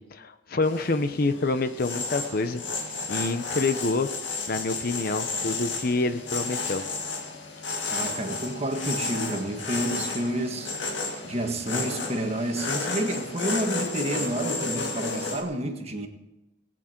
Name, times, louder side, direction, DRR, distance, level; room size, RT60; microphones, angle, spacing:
voice 1, 0.0-2.6 3.1-4.1 4.5-6.8, left 3 dB, 55° left, 10 dB, 0.8 m, -27 dB
sound 1, 0.6-15.4, left 3 dB, 85° left, 1.9 m, -32 dB
voice 2, 7.9-10.8 11.2-16.1, right 1 dB, 35° right, 3 dB, 1.7 m, -30 dB
19.5 x 9.1 x 4.5 m, 1.0 s
head